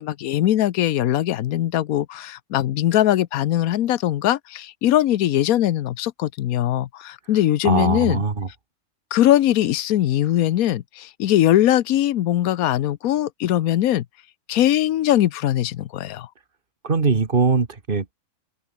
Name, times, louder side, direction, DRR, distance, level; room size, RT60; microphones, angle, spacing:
voice 1, 0.0-8.2 9.1-14.0 14.5-16.3, left 12 dB, 75° left, 1.2 m, -21 dB
voice 2, 7.6-8.5 16.8-18.1, right 4 dB, 35° right, 1.9 m, -21 dB
open air
omnidirectional pair, 1.6 m